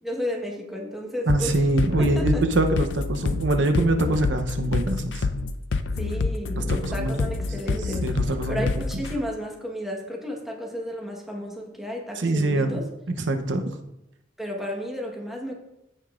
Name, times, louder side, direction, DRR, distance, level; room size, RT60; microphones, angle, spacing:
voice 1, 0.0-1.6 2.0-2.5 5.9-12.9 14.4-15.5, equal, ahead, -1 dB, 1.3 m, -32 dB
sound 1, 1.3-9.1, left 3 dB, 75° left, 0.5 m, -27 dB
voice 2, 1.3-5.3 6.5-7.3 7.8-8.7 12.2-12.8 13.3-13.7, right 2 dB, 80° right, 7 dB, 0.8 m, -24 dB
15.5 x 5.3 x 2.5 m, 0.87 s
head